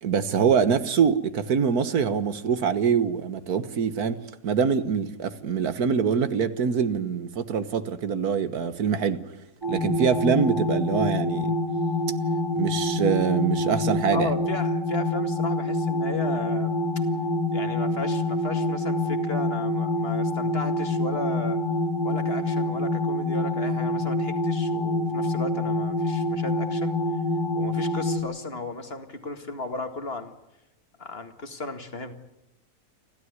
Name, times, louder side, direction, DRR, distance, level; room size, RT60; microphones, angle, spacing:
voice 1, 0.0-4.2 4.4-9.2 9.7-11.5 12.6-14.3, right 6 dB, 90° right, 1.8 m, -24 dB
sound 1, 9.6-28.2, left 2 dB, 70° right, 5.2 m, -26 dB
voice 2, 14.1-17.0 17.5-21.6 22.0-27.0 27.5-30.4 31.0-32.1, left 2 dB, 40° left, 2.2 m, -35 dB
29.5 x 13.0 x 9.7 m
omnidirectional pair, 1.6 m